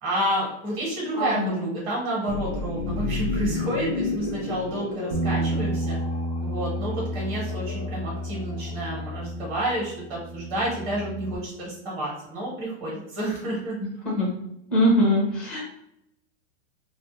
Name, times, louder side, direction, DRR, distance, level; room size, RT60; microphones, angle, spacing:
voice 1, 0.0-6.0 6.4-13.8, right 1 dB, 25° right, -4 dB, 1.0 m, -30 dB
voice 2, 1.1-1.6 14.0-14.3 14.7-15.6, equal, 5° left, -5 dB, 0.4 m, -22 dB
sound 1, 2.3-9.2, left 4 dB, 55° left, 0.5 m, -33 dB
Bass guitar, 5.1-11.4, equal, 70° right, 0.6 m, -31 dB
2.3 x 2.1 x 2.9 m, 0.80 s
supercardioid pair, 155°, 35 cm